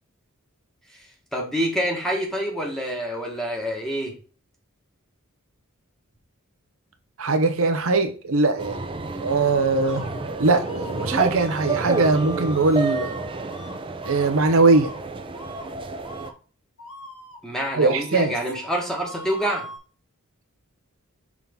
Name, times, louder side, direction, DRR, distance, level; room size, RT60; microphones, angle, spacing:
voice 1, 1.3-4.1 17.4-19.7, equal, ahead, 1.6 m, -27 dB
voice 2, 7.2-8.8 9.2-10.0 10.4-13.2 14.1-14.9 17.7-18.3, right 3 dB, 65° right, 0.8 m, -20 dB
sound 1, 8.6-16.3, right 3 dB, 25° right, 0.6 m, -30 dB
sound 2, 9.8-13.2 13.5-13.7 14.0-14.3 14.7-15.0 15.3-15.7 16.0-16.3 16.8-19.8, equal, 60° left, 3.1 m, -41 dB
6.1 x 3.8 x 5.2 m
head